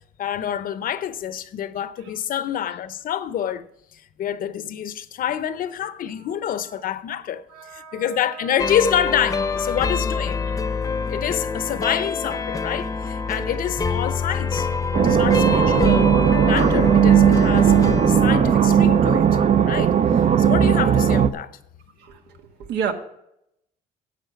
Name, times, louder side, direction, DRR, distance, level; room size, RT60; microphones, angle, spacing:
voice 1, 0.2-3.7 3.9-7.4 7.7-10.5 11.1-14.7 15.0-16.1 16.5-17.7 18.1-19.3 19.6-21.6, left 10 dB, 55° left, 0.7 m, -27 dB
voice 2, 7.5-8.7 10.5-10.7 22.0-22.9, right 7 dB, 80° right, 1.5 m, -33 dB
sound 1, 8.6-19.6, left 5 dB, 20° left, 0.8 m, -26 dB
sound 2, 14.9-21.3, right 8 dB, 40° right, 0.6 m, -17 dB
10.5 x 7.7 x 5.9 m
cardioid pair, 110°, 17 cm